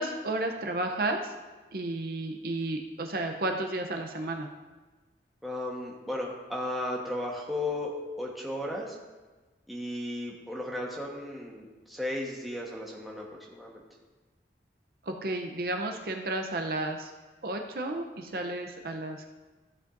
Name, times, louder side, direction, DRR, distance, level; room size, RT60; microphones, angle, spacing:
voice 1, 0.0-1.3 1.7-4.5 15.1-17.1 17.4-19.3, right 2 dB, 55° right, 4 dB, 0.7 m, -32 dB
voice 2, 5.4-9.0 9.7-13.8, left 1 dB, ahead, -3 dB, 1.2 m, -35 dB
14.0 x 7.9 x 2.6 m, 1.3 s
head